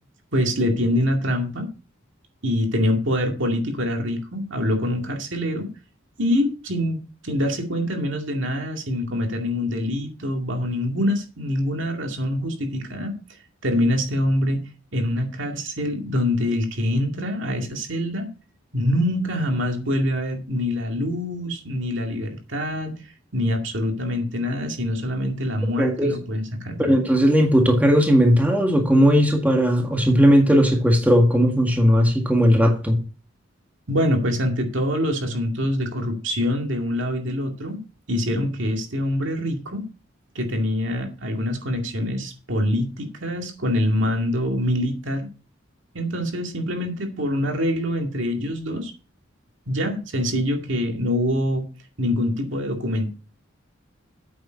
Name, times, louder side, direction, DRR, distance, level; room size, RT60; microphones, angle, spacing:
voice 1, 0.3-1.7 2.4-5.7 6.2-7.0 7.2-13.1 13.6-14.6 14.9-18.3 18.7-22.9 23.3-27.0 33.9-37.8 38.1-39.8 40.3-45.3 45.9-48.9 49.7-51.7 52.0-53.1, left 1 dB, 65° right, 3 dB, 2.3 m, -25 dB
voice 2, 25.8-26.1 26.8-33.0, equal, 10° right, 2 dB, 1.7 m, -17 dB
8.6 x 7.1 x 5.2 m, 0.35 s
head